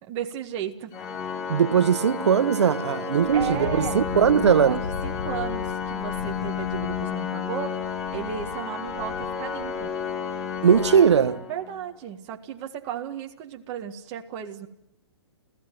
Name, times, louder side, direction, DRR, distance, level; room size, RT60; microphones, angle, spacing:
voice 1, 0.0-0.9 3.3-4.1 4.5-9.9 11.5-14.7, right 9 dB, 25° right, 1.7 m, -34 dB
Organ, 0.9-11.9, left 6 dB, 20° left, 1.6 m, -32 dB
voice 2, 1.5-4.8 10.6-11.5, right 7 dB, 75° right, 1.3 m, -20 dB
Wind, 3.2-11.3, left 5 dB, 75° left, 1.1 m, -38 dB
29.5 x 16.0 x 9.3 m
hypercardioid pair, 165°, 15 cm